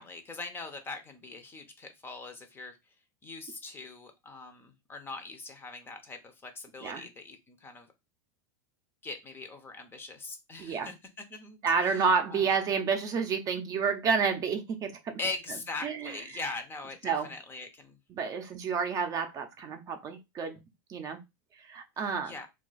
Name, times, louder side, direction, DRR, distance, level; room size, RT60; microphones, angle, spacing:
voice 1, 0.0-2.8 3.2-7.9 9.0-10.9 11.3-12.0 12.3-12.5 15.2-18.0 22.3-22.5, left 3 dB, 20° left, 7 dB, 0.6 m, -41 dB
voice 2, 10.6-10.9 11.6-15.2 15.8-16.2 17.0-17.3 18.1-20.6 20.9-21.2 21.6-22.3, right 5 dB, 30° right, 6 dB, 0.5 m, -30 dB
2.4 x 2.3 x 3.9 m, 0.23 s
supercardioid pair, 125°, 12 cm